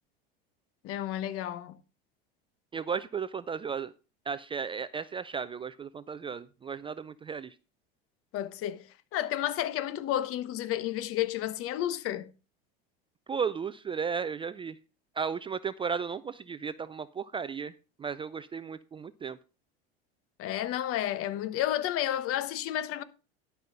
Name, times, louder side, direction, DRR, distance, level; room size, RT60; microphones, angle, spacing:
voice 1, 0.8-1.8 8.3-8.8 9.1-12.3 20.4-23.0, left 12 dB, 50° left, 1.1 m, -31 dB
voice 2, 2.7-3.9 4.3-7.5 13.3-14.8 15.2-17.7 18.0-19.4, right 6 dB, 20° right, 0.4 m, -34 dB
12.0 x 5.6 x 5.3 m
hypercardioid pair, 95°, 30 cm